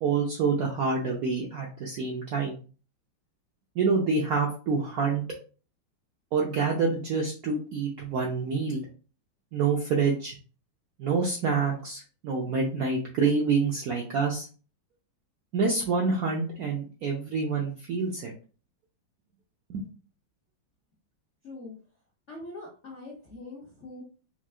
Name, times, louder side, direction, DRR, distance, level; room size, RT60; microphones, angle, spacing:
voice 1, 0.0-2.6 3.8-5.2 6.3-8.8 9.5-10.4 11.0-14.5 15.5-18.3 19.7-19.8, right 4 dB, 75° right, -1 dB, 0.8 m, -27 dB
voice 2, 21.4-21.8 22.3-24.0, left 2 dB, 65° left, -3 dB, 0.7 m, -42 dB
4.5 x 2.3 x 2.4 m, 0.37 s
omnidirectional pair, 2.2 m